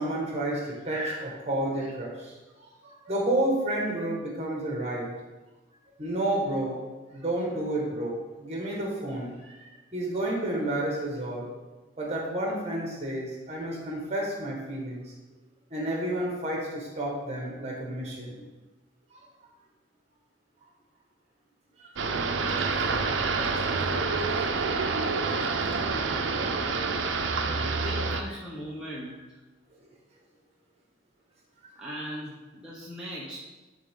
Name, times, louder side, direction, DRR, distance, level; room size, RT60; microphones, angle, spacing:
voice 1, 0.0-5.1 6.0-6.8 7.1-9.6 9.9-11.5 12.0-15.1 15.7-18.4 21.8-21.9 24.8-24.9 27.4-27.6, right 1 dB, 35° right, -2 dB, 1.6 m, -31 dB
sound 1, 22.0-28.2, right 4 dB, 80° right, 0.6 m, -27 dB
voice 2, 27.7-29.2 31.8-33.4, equal, 5° right, -7 dB, 0.9 m, -39 dB
10.5 x 3.8 x 3.7 m, 1.2 s
head